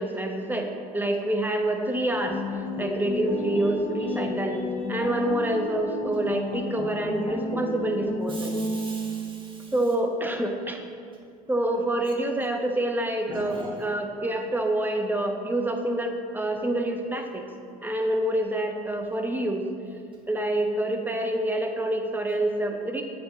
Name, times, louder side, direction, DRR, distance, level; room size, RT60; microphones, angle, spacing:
voice 1, 0.0-4.6 4.9-8.6 9.7-10.8 11.5-17.4 17.8-19.7 20.3-23.0, right 1 dB, 10° right, 4 dB, 0.9 m, -27 dB
sound 1, 2.1-9.4, left 2 dB, 25° left, 0.8 m, -32 dB
voice 2, 8.3-9.7 13.3-13.7, right 1 dB, 25° right, -2 dB, 1.6 m, -41 dB
7.7 x 7.0 x 4.0 m, 2.3 s
hypercardioid pair, 70°, 20 cm